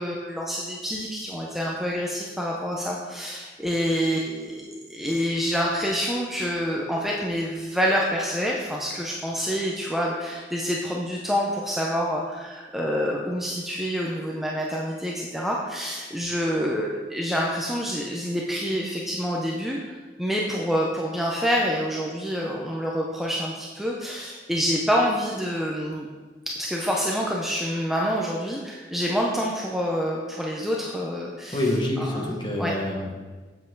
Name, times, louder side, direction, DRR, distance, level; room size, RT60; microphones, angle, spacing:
voice 1, 0.0-26.1 26.5-32.7, equal, ahead, -3 dB, 0.6 m, -27 dB
voice 2, 31.5-33.1, left 1 dB, 25° left, -1 dB, 1.4 m, -26 dB
7.7 x 7.3 x 3.9 m, 1.3 s
head